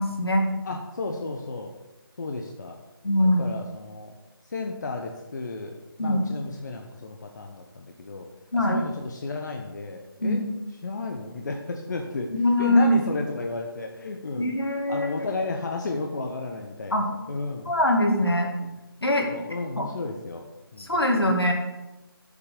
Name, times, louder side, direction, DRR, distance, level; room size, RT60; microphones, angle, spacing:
voice 1, 0.0-0.5 3.0-3.4 6.0-6.2 8.5-8.8 10.2-10.4 12.3-13.0 14.4-15.3 16.9-17.1 17.7-18.5 19.0-19.3 19.8-19.9 20.8-21.5, left 1 dB, 80° left, 2 dB, 2.2 m, -22 dB
voice 2, 0.6-1.7 2.2-2.8 3.4-4.2 4.4-8.3 8.5-10.4 10.8-12.3 12.6-14.5 14.9-17.0 17.3-17.7 18.6-18.7 19.3-20.9, left 3 dB, 50° left, 2 dB, 0.9 m, -33 dB
8.0 x 5.8 x 6.6 m, 1.0 s
figure-of-eight pair, 155°, 13 cm